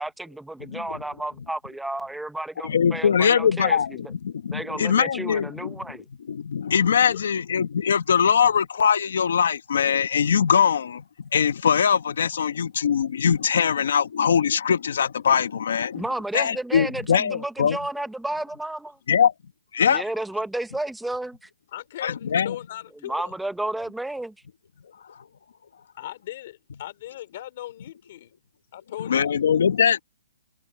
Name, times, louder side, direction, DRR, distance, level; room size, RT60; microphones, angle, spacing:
voice 1, 0.0-3.8 4.5-6.1 15.9-19.0 19.9-21.5 23.0-24.3, right 1 dB, ahead, 0.8 m, -32 dB
voice 2, 2.6-5.8 6.3-11.0 11.3-16.0 16.3-17.8 19.1-19.3 19.7-20.0 22.0-22.5 29.0-30.0, left 7 dB, 55° left, 1.3 m, -22 dB
voice 3, 21.7-23.3 26.0-28.3 28.7-29.3, left 14 dB, 30° left, 2.8 m, -38 dB
hypercardioid pair, 175°, 0 cm